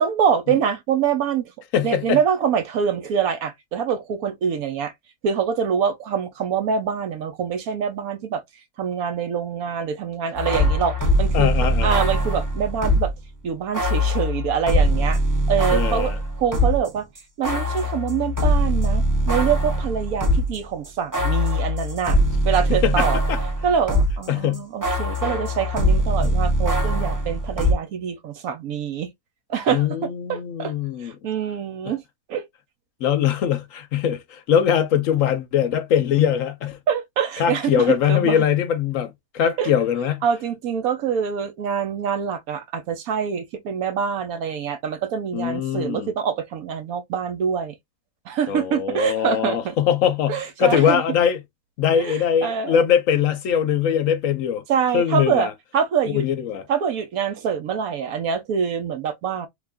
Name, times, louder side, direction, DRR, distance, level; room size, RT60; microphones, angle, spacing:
voice 1, 0.0-1.5 1.8-4.9 5.2-8.4 8.8-11.5 11.8-13.1 13.4-15.2 15.5-16.1 16.4-17.1 17.4-23.2 23.6-29.1 29.5-29.9 30.3-30.7 31.0-32.0 32.3-32.4 36.9-38.5 39.6-39.7 40.2-47.7 48.3-49.8 50.3-51.0 51.9-52.8 54.7-56.2 56.7-59.5, right 7 dB, 70° right, 1.1 m, -25 dB
voice 2, 1.7-2.2 11.3-12.0 15.7-16.2 22.7-23.4 24.3-24.6 26.2-26.3 29.7-31.1 33.0-36.8 37.4-40.2 45.3-46.1 48.5-51.4 51.8-54.6 54.9-55.5 56.1-56.6, left 9 dB, 70° left, 0.9 m, -22 dB
sound 1, 10.3-13.2 13.7-16.9 17.2-24.3 24.5-27.7, equal, 15° right, 0.7 m, -22 dB
3.4 x 2.5 x 3.4 m
omnidirectional pair, 1.6 m